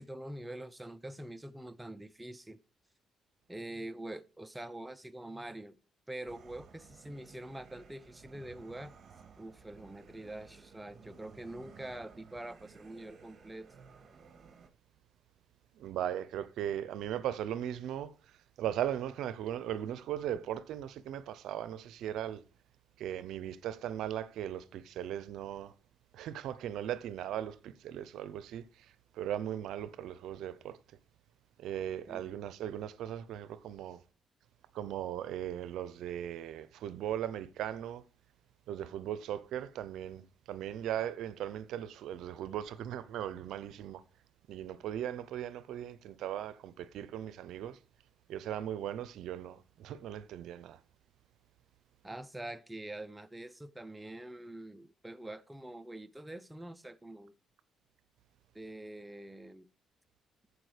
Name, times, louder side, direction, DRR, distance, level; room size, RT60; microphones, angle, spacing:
voice 1, 0.0-2.6 3.5-5.8 6.1-8.9 9.4-13.7 32.1-32.3 52.0-57.3 58.5-59.7, right 1 dB, 10° right, 0.7 m, -45 dB
sound 1, 6.3-14.7, right 5 dB, 50° right, 1.8 m, -56 dB
voice 2, 15.8-22.4 23.0-25.7 26.1-30.8 31.6-34.0 34.7-38.0 38.7-44.0 44.5-47.8 48.3-50.8, right 11 dB, 80° right, 0.6 m, -38 dB
14.0 x 4.9 x 5.0 m
cardioid pair, 90°, 0 cm